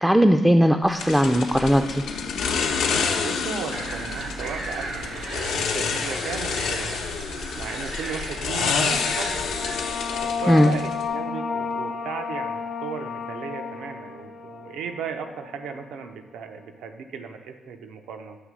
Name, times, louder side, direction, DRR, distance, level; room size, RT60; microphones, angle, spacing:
voice 1, 0.0-2.0 10.5-10.7, equal, 5° right, 6 dB, 0.3 m, -18 dB
sound 1, 1.0-11.1, left 5 dB, 85° left, 0.7 m, -28 dB
voice 2, 3.2-7.0 7.6-9.5 10.2-18.4, right 6 dB, 85° right, 7 dB, 0.5 m, -36 dB
sound 2, 3.7-9.8, right 3 dB, 70° right, 0.9 m, -36 dB
sound 3, 8.7-15.9, left 5 dB, 60° left, 0.8 m, -32 dB
7.5 x 3.2 x 6.1 m, 1.1 s
cardioid pair, 100°, 0 cm